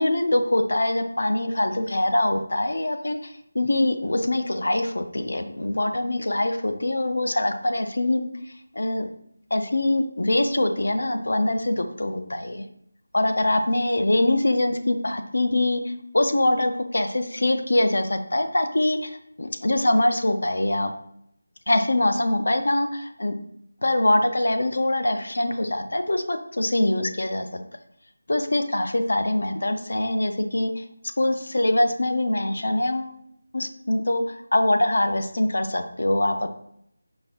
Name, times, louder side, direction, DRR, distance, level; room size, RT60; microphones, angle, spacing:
voice 1, 0.0-8.2 8.7-9.1 9.5-11.7 12.0-12.6 13.1-20.9 21.7-23.4 23.8-27.5 28.3-30.8 31.2-33.1 33.5-36.5, left 1 dB, 75° left, 7 dB, 0.6 m, -23 dB
5.1 x 2.5 x 3.6 m, 0.72 s
figure-of-eight pair, 175°, 0 cm